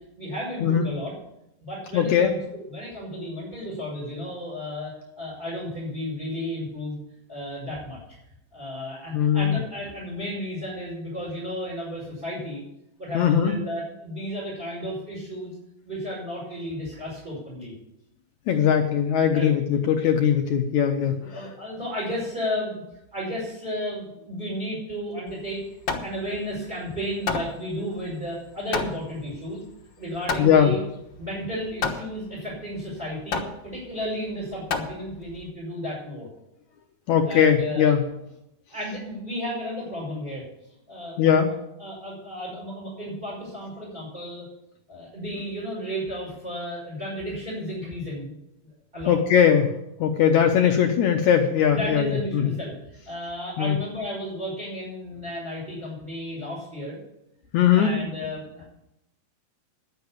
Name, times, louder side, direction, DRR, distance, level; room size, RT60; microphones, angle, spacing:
voice 1, 0.2-1.1 1.6-2.4 2.7-7.0 7.3-8.0 8.5-12.6 13.0-15.5 15.8-17.7 19.3-19.5 21.0-22.8 23.1-25.6 26.0-29.6 30.0-30.8 31.2-36.3 37.2-37.9 38.7-40.4 40.9-41.3 41.8-44.4 44.9-48.3 48.9-49.1 51.7-57.0 57.7-58.7, equal, 15° right, -7 dB, 5.5 m, -33 dB
voice 2, 1.9-2.3 9.1-9.6 13.1-13.5 18.5-21.2 30.4-30.7 37.1-38.0 41.2-41.5 49.1-49.7 50.0-52.5 53.6-53.8 57.5-58.0, left 8 dB, 70° left, 4 dB, 1.9 m, -20 dB
Hammer, 25.3-35.5, left 5 dB, 85° left, 1.0 m, -33 dB
11.0 x 8.2 x 8.5 m, 0.82 s
omnidirectional pair, 4.2 m